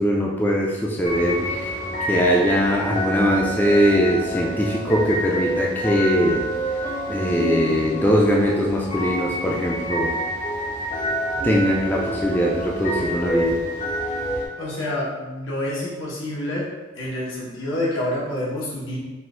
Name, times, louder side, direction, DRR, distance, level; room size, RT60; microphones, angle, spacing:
voice 1, 0.0-1.7 2.1-6.4 7.1-10.1 11.4-13.6, equal, 10° left, -2 dB, 0.3 m, -21 dB
sound 1, 1.0-14.4, equal, 40° left, 0.9 m, -27 dB
voice 2, 14.6-16.7 16.9-19.0, left 1 dB, 75° left, -5 dB, 1.2 m, -27 dB
4.2 x 2.4 x 3.7 m, 1.2 s
head